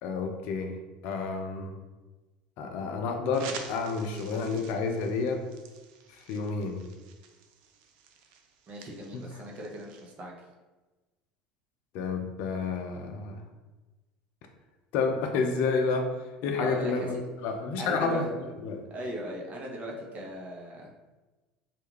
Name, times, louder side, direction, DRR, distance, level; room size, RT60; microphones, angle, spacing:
voice 1, 0.0-0.7 1.0-1.7 2.6-5.4 6.1-6.8 9.1-9.2 11.9-13.4 14.9-16.1 16.4-18.3 18.6-18.8, left 4 dB, 60° left, 4 dB, 0.4 m, -30 dB
sound 1, 3.3-10.1, right 6 dB, 65° right, 0.3 m, -48 dB
voice 2, 8.7-10.3 16.6-17.2 17.8-18.3 18.9-20.9, right 1 dB, 40° right, -1 dB, 0.7 m, -38 dB
2.4 x 2.2 x 3.1 m, 1.2 s
hypercardioid pair, 75°, 4 cm